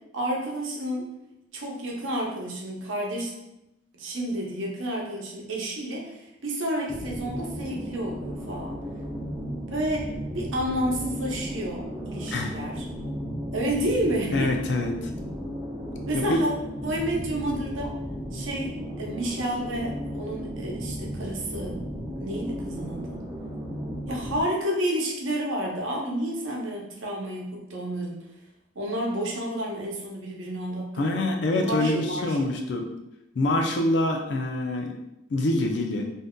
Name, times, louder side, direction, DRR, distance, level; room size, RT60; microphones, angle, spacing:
voice 1, 0.1-1.1 1.5-3.3 3.9-8.8 9.7-12.8 13.5-14.6 16.1-16.5 16.8-17.9 18.3-21.8 22.1-23.2 24.1-28.2 28.8-31.1 31.6-32.5, right 1 dB, 85° right, -1 dB, 0.7 m, -30 dB
sound 1, 6.9-24.4, equal, 10° right, 0.3 m, -35 dB
voice 2, 14.3-15.1 16.1-16.4 30.9-32.9 33.4-35.0 35.3-36.1, left 1 dB, 65° left, 3 dB, 0.4 m, -25 dB
2.6 x 2.2 x 3.6 m, 0.87 s
head